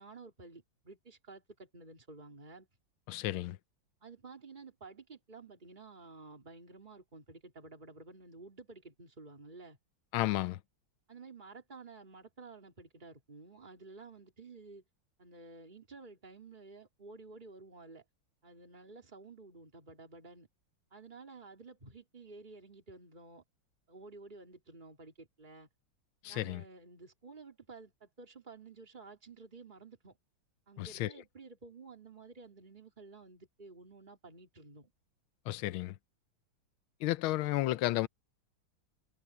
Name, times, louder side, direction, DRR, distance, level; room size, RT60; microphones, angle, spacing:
voice 1, 0.0-2.7 4.0-9.8 11.1-14.8 15.2-18.0 18.4-20.5 20.9-23.4 23.9-25.7 26.3-30.2 30.7-34.9, right 3 dB, 20° right, 3.3 m, -52 dB
voice 2, 3.1-3.6 10.1-10.6 26.2-26.6 30.8-31.1 35.5-35.9 37.0-38.1, left 16 dB, 85° left, 1.5 m, -32 dB
omnidirectional pair, 2.2 m